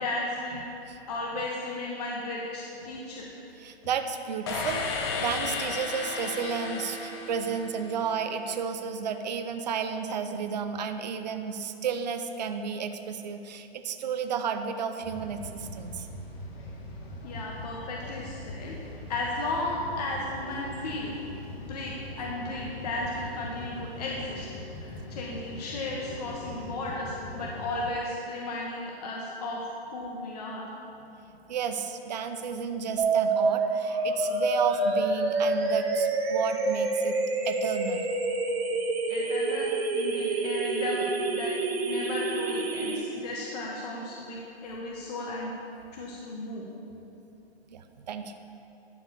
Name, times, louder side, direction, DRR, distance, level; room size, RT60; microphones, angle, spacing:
voice 1, 0.0-0.7 1.1-3.3 17.2-18.7 19.1-21.1 21.6-24.5 24.8-30.7 39.1-41.6 41.9-45.5 45.9-46.7, left 2 dB, 40° left, -3 dB, 1.1 m, -34 dB
voice 2, 3.6-16.1 31.5-37.2 37.4-38.0 47.7-48.3, right 6 dB, 45° right, 7 dB, 0.6 m, -32 dB
sound 1, 4.5-8.3, left 4 dB, 25° left, 0.8 m, -34 dB
sound 2, 15.0-27.9, left 1 dB, 75° left, 2.3 m, -41 dB
sound 3, 33.0-43.0, right 3 dB, 75° right, 1.8 m, -27 dB
12.0 x 4.7 x 6.7 m, 3.0 s
hypercardioid pair, 165°, 32 cm